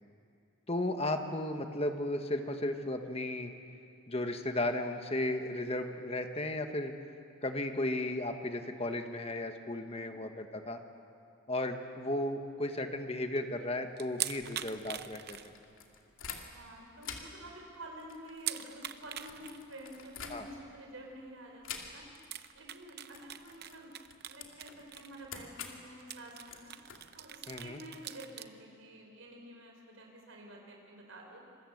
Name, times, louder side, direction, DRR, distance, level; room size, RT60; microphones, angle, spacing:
voice 1, 0.7-3.5 4.1-6.9 7.4-10.8 11.5-15.5 20.3-20.4 27.5-27.8, left 1 dB, 30° left, 6 dB, 1.5 m, -35 dB
voice 2, 9.7-10.2 16.4-21.7 21.9-22.1 22.5-23.9 24.3-26.7 27.1-31.4, right 1 dB, 75° right, 1 dB, 4.8 m, -49 dB
sound 1, 14.0-15.9 16.3-16.4 16.8-16.9 17.2-17.3 18.4-19.6 20.1-20.2 21.5-21.6 22.2-25.3 25.6-25.7 26.0-28.5, right 12 dB, 50° right, 0.7 m, -42 dB
sound 2, 14.3-16.7 17.0-20.8 21.6-22.3 22.6-22.8 23.1-27.7, left 6 dB, 70° left, 2.6 m, -48 dB
27.0 x 22.0 x 8.0 m, 2.5 s
head